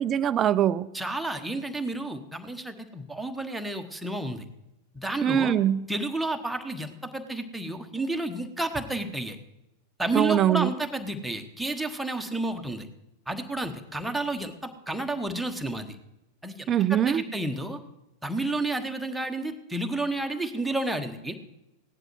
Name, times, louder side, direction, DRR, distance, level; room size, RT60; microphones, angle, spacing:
voice 1, 0.0-0.9 5.2-5.9 10.1-10.7 16.7-17.3, right 10 dB, 25° right, 16 dB, 0.5 m, -23 dB
voice 2, 0.9-4.4 4.9-5.5 5.9-9.4 10.0-12.9 13.3-16.0 16.4-17.8 18.2-21.4, right 2 dB, 5° right, 4 dB, 1.2 m, -31 dB
16.5 x 10.5 x 4.7 m, 0.91 s
figure-of-eight pair, 90°, 0 cm